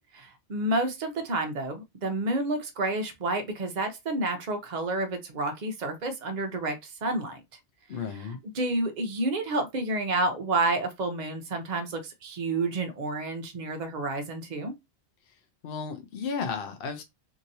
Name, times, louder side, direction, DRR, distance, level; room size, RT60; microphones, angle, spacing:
voice 1, 0.1-7.4 8.1-14.7, right 2 dB, 45° right, 0.7 m, -30 dB
voice 2, 7.9-8.4 15.6-17.0, left 5 dB, 60° left, 0.7 m, -33 dB
2.9 x 2.7 x 2.6 m
omnidirectional pair, 1.2 m